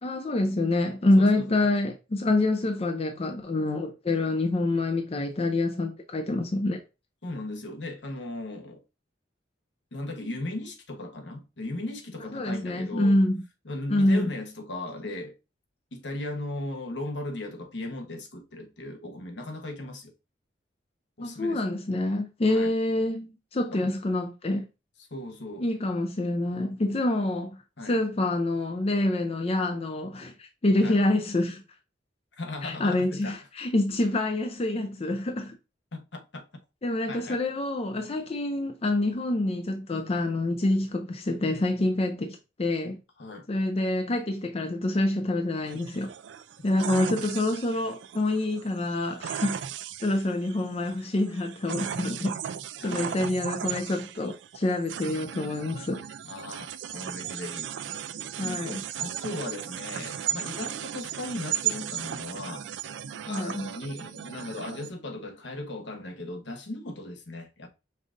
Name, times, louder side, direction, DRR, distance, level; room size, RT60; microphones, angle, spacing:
voice 1, 0.0-6.8 12.3-13.4 13.9-14.3 21.2-24.6 25.6-31.6 32.6-35.5 36.8-43.0 43.5-46.1 46.6-49.6 50.0-52.4 52.8-56.0 58.4-58.8 63.3-63.7, left 2 dB, 35° left, 0.5 m, -26 dB
voice 2, 1.2-1.6 7.2-8.8 9.9-13.1 13.6-15.3 15.9-20.1 21.2-21.6 22.4-22.7 23.7-23.9 25.1-25.7 27.8-28.0 30.8-31.0 32.4-33.4 35.9-36.4 37.1-37.4 43.2-43.4 52.8-53.3 56.2-62.7 63.2-67.7, left 2 dB, 70° left, 1.1 m, -37 dB
sound 1, 45.7-64.9, right 10 dB, 75° right, 0.4 m, -36 dB
5.4 x 2.5 x 3.7 m
head